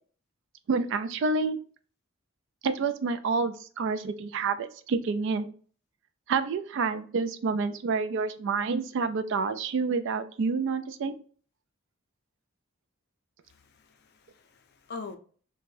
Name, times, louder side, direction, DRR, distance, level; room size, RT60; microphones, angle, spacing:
voice 1, 0.7-1.6 2.6-5.5 6.3-11.1, right 4 dB, 60° right, 0.3 m, -28 dB
voice 2, 13.5-15.2, left 4 dB, 50° left, 0.4 m, -43 dB
2.5 x 2.2 x 3.2 m
head